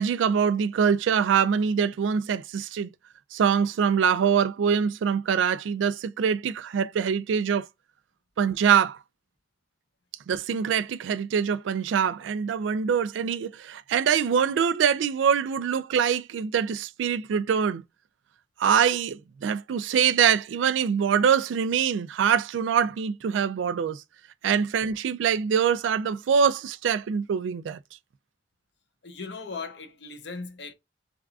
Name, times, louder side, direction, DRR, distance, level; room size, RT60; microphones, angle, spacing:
voice 1, 0.0-2.9 3.3-7.7 8.4-9.0 10.3-17.8 18.6-24.0 24.4-27.8, right 7 dB, 90° right, 0.3 m, -24 dB
voice 2, 29.0-30.7, left 4 dB, 70° left, 0.7 m, -38 dB
3.5 x 2.3 x 2.3 m
head